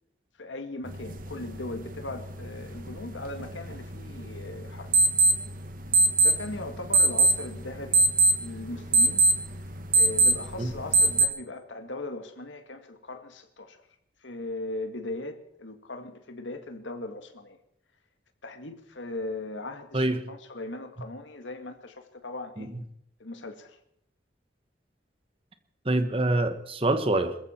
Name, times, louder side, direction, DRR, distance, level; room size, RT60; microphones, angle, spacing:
voice 1, 0.4-4.9 6.2-8.0 8.4-9.3 9.9-13.8 14.2-17.6 18.4-22.7 23.2-23.8, left 2 dB, 85° left, 7 dB, 1.8 m, -38 dB
sound 1, 0.9-11.3, right 3 dB, 45° right, 1.5 m, -25 dB
voice 2, 25.8-27.4, right 2 dB, 30° right, 9 dB, 1.3 m, -25 dB
21.5 x 14.5 x 4.4 m, 0.74 s
head